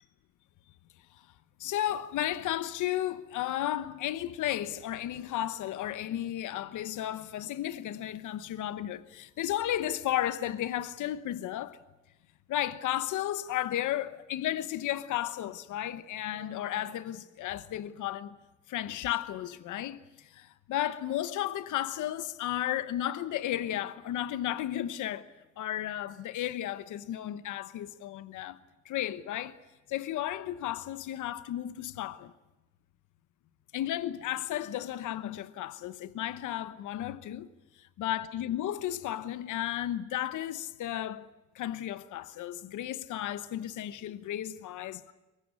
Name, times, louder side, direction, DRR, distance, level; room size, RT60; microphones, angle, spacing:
voice 1, 1.6-11.8 12.5-18.4 18.7-25.3 25.6-28.6 28.8-29.6 29.9-32.3 33.7-37.5 38.0-41.3 41.5-45.1, left 12 dB, 80° left, 1.1 m, -33 dB
Human voice, 16.3-18.0, right 4 dB, 40° right, 4.9 m, -56 dB
23.5 x 20.5 x 9.6 m
cardioid pair, 90°, 30 cm